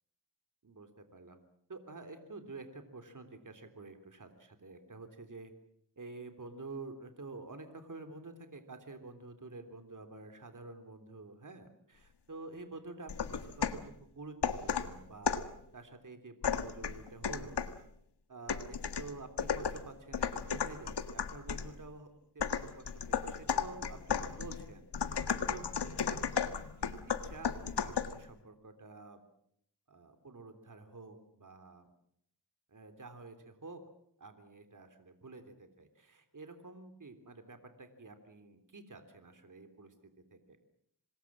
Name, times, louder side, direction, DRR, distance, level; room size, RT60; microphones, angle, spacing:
voice 1, 0.6-1.4 1.7-5.5 6.0-15.4 15.7-17.6 18.3-22.1 22.3-25.6 26.0-26.2 26.8-29.2 29.9-31.9 32.7-33.8 34.2-39.9 40.3-40.6, right 3 dB, 50° right, 7 dB, 3.4 m, -49 dB
sound 1, 13.1-13.9 14.4-15.6 16.4-17.8 18.5-21.7 22.4-28.2, left 7 dB, 85° left, 1.8 m, -35 dB
26.5 x 21.5 x 7.5 m, 0.70 s
cardioid pair, 65°, 40 cm